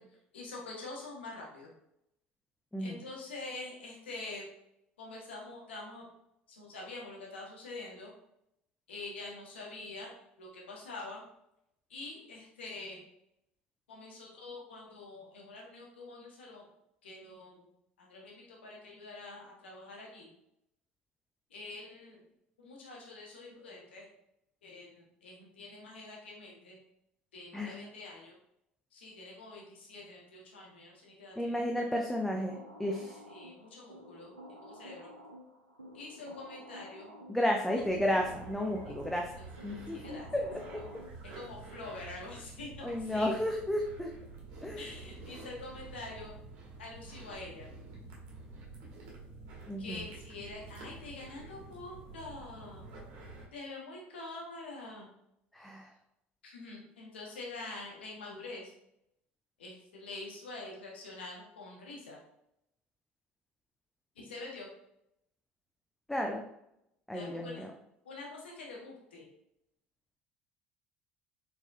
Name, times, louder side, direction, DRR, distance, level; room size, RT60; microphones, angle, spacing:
voice 1, 0.3-1.7 2.8-4.5 5.0-6.1 6.5-8.1 8.9-11.2 11.9-13.0 13.9-16.7 17.0-17.7 18.0-20.3 21.5-22.2 22.6-24.1 24.6-26.8 27.3-28.4 28.9-31.7 33.3-34.3 34.6-35.1 35.9-37.1 37.7-37.8 38.8-38.9 39.3-39.4 39.9-40.3 40.7-40.9 41.3-43.3 44.8-46.4 46.8-47.7 49.8-52.9 53.5-55.1 56.4-58.7 59.6-62.2 64.2-64.7 67.1-67.7 68.0-69.3, left 2 dB, 75° left, -2 dB, 1.1 m, -46 dB
voice 2, 31.4-33.2 37.3-39.3 39.6-40.5 40.7-41.0 42.8-44.1 44.6-44.8 49.7-50.0 55.5-55.9 66.1-66.4 67.1-67.7, left 1 dB, 5° left, 1 dB, 0.5 m, -32 dB
sound 1, 32.0-41.5, equal, 90° right, 0.5 m, -52 dB
sound 2, 37.8-53.5, right 3 dB, 55° right, 1.5 m, -49 dB
4.7 x 4.1 x 2.5 m, 0.80 s
figure-of-eight pair, 60°, 6 cm